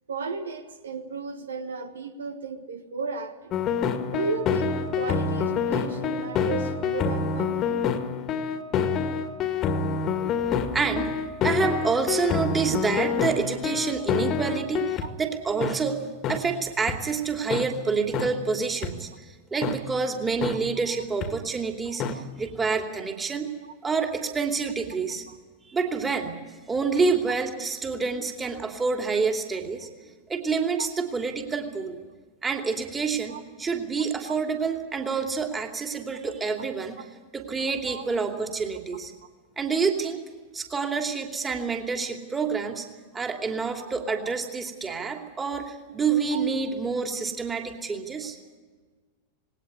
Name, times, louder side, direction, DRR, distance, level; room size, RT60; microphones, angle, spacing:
voice 1, 0.1-3.6 4.1-7.9 12.9-13.0 14.2-14.5 15.0-15.1 18.2-18.3 20.8-21.0 21.8-22.2 23.6-23.7 25.3-25.4 30.8-30.9 33.3-33.4 34.2-34.4 37.8-38.1 43.8-43.9 44.9-45.0 45.9-46.0 46.3-46.4, right 4 dB, 70° right, 9 dB, 1.4 m, -35 dB
sound 1, 3.5-15.1 15.6-15.7 16.2-16.4 16.9-17.0 17.5-17.6 18.1-18.3 18.8-18.9 19.6-19.8 20.4-20.5 21.2-21.3 22.0-22.1, left 6 dB, 35° left, 2.0 m, -27 dB
voice 2, 10.7-11.2 11.4-16.0 16.3-19.1 19.5-23.5 23.8-25.2 25.7-26.3 26.7-29.9 30.3-32.0 32.4-37.0 37.3-39.1 39.6-40.2 40.5-42.8 43.1-48.4, right 5 dB, 15° right, 4 dB, 2.8 m, -28 dB
20.0 x 18.5 x 9.8 m, 1.4 s
figure-of-eight pair, 90°, 0 cm